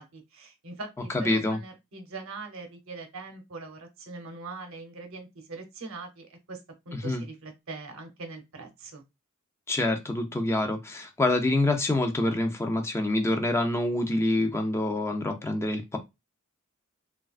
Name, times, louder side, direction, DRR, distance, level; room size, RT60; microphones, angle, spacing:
voice 1, 0.0-9.0, right 3 dB, 65° right, 5 dB, 0.8 m, -42 dB
voice 2, 1.1-1.6 7.0-7.2 9.7-16.0, left 2 dB, 10° left, 5 dB, 0.4 m, -26 dB
3.2 x 2.3 x 2.4 m, 0.22 s
head